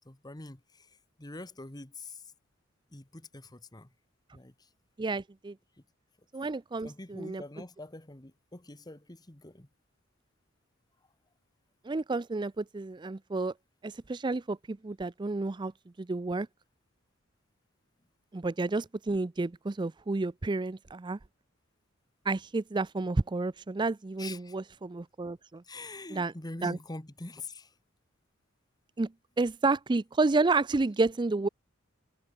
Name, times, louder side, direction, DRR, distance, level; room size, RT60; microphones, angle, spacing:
voice 1, 0.0-2.3 2.9-3.9 4.3-4.7 6.8-9.7 24.2-24.6 25.6-27.7, left 2 dB, 20° left, 1.3 m, -45 dB
voice 2, 5.0-5.5 6.3-7.4 11.8-13.5 13.8-15.7 16.0-16.5 18.3-21.2 22.3-25.6 26.1-26.3 26.6-26.8 29.0-29.1 29.4-31.5, right 3 dB, 20° right, 0.4 m, -30 dB
head